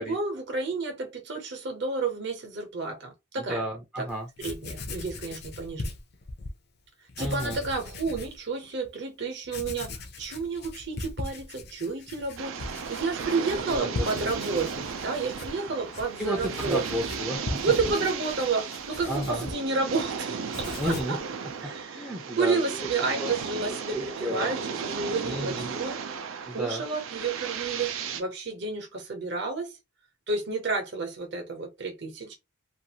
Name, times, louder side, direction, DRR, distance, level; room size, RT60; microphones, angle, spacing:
voice 1, 0.0-3.6 4.0-4.1 4.4-5.9 7.2-16.8 17.6-21.2 21.6-26.0 26.5-29.8 30.3-32.3, right 4 dB, 55° right, 0.9 m, -31 dB
voice 2, 3.4-4.3 7.2-7.6 13.8-14.3 16.2-17.8 19.1-19.5 20.8-21.2 21.9-22.9 23.2-23.3 23.7-24.5 25.2-25.7 26.5-26.8, equal, 5° right, 0.4 m, -32 dB
Writing, 4.1-4.2 4.4-6.6 7.1-8.4 8.8-8.9 9.4-20.1 20.4-21.2, left 2 dB, 50° left, 0.5 m, -39 dB
sound 1, 12.4-28.2, right 6 dB, 70° right, 0.4 m, -35 dB
2.5 x 2.4 x 2.8 m
head